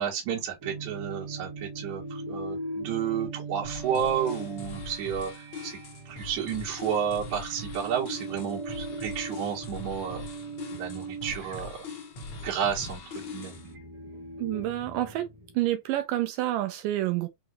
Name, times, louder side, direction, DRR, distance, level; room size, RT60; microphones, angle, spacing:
voice 1, 0.0-5.8 6.1-10.2 10.8-11.8 12.4-13.5, right 8 dB, 60° right, 2.9 m, -31 dB
sound 1, 0.6-15.7, right 3 dB, 40° right, 1.8 m, -40 dB
sound 2, 3.6-13.7, left 4 dB, 55° left, 1.6 m, -42 dB
voice 2, 14.4-15.3 15.6-17.3, right 14 dB, 80° right, 2.2 m, -28 dB
5.8 x 2.8 x 2.6 m
omnidirectional pair, 4.0 m